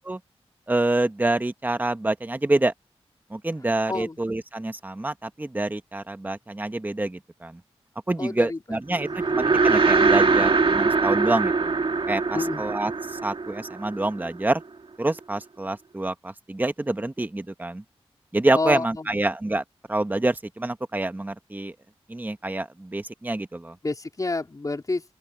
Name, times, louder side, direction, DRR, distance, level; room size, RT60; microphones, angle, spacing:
voice 1, 0.7-2.7 3.3-7.6 8.1-11.7 12.1-14.6 15.0-17.8 18.3-21.7 22.1-23.8, right 2 dB, 15° right, 1.1 m, -27 dB
voice 2, 3.9-4.2 8.2-9.4 12.3-12.6 18.5-19.2 23.8-25.0, left 3 dB, 35° left, 3.8 m, -30 dB
sound 1, 9.0-14.4, right 4 dB, 55° right, 1.7 m, -22 dB
open air
wide cardioid pair, 110°, 11 cm